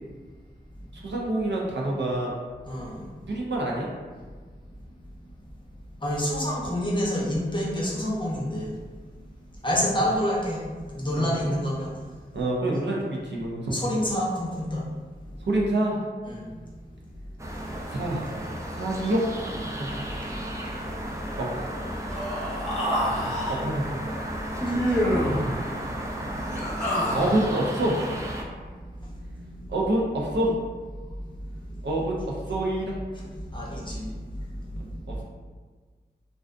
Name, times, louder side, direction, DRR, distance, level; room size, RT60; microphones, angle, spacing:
voice 1, 0.9-2.3 3.3-3.9 11.2-11.6 12.3-13.8 15.4-16.0 17.9-18.3 18.7-20.1 21.4-21.5 23.6-24.1 27.1-28.0 29.7-30.6 31.8-33.0 35.1-35.2, right 1 dB, 75° right, -3 dB, 0.5 m, -27 dB
voice 2, 2.7-3.1 6.0-8.8 9.1-9.2 9.6-11.9 13.7-14.9 15.2-15.4 16.2-17.6 20.6-20.8 21.1-21.4 22.2-22.7 23.1-23.2 24.4-25.1 25.4-25.5 25.8-26.9 28.7-29.7 31.0-31.8 33.2-35.2, equal, 25° left, -5 dB, 0.6 m, -30 dB
sound 1, 17.4-28.4, right 1 dB, 15° right, 0.3 m, -34 dB
Human voice, 22.1-23.6 24.6-25.4 26.4-27.5, equal, 5° left, 0.9 m, -27 dB
2.4 x 2.3 x 2.4 m, 1.4 s
wide cardioid pair, 80°, 19 cm